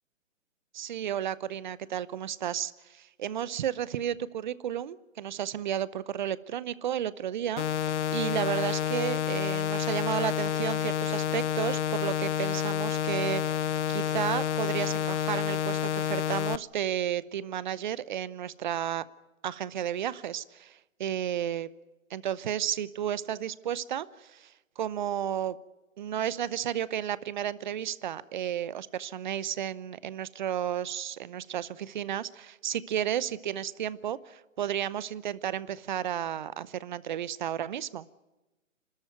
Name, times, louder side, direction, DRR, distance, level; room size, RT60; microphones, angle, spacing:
voice 1, 0.7-19.0 19.4-21.7 22.1-25.6 26.0-38.1, right 10 dB, 35° right, 18 dB, 0.8 m, -33 dB
sound 1, 7.6-16.6, left 9 dB, 65° left, 0.6 m, -29 dB
27.5 x 13.5 x 9.2 m, 1.1 s
hypercardioid pair, 150°, 39 cm